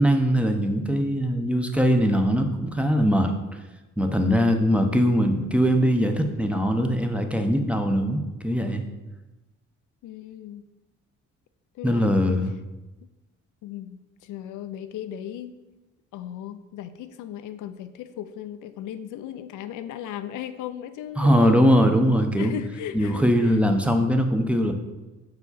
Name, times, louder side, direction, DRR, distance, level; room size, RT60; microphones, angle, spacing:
voice 1, 0.0-3.3 4.0-8.8 11.8-12.5 21.2-22.5 22.9-24.7, equal, 5° right, 5 dB, 0.6 m, -21 dB
voice 2, 4.6-5.1 10.0-10.6 11.7-12.3 13.6-15.5 16.1-21.7 22.4-23.6, left 11 dB, 80° left, 11 dB, 0.5 m, -37 dB
5.6 x 4.8 x 4.1 m, 1.1 s
cardioid pair, 90°, 30 cm